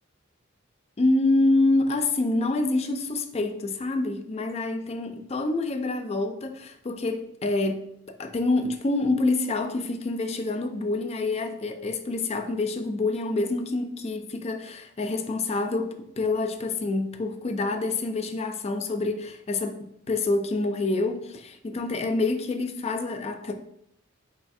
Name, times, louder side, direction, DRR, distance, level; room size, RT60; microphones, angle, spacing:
voice 1, 1.0-23.5, left 2 dB, 30° left, 0.4 m, -27 dB
4.7 x 4.3 x 2.6 m
head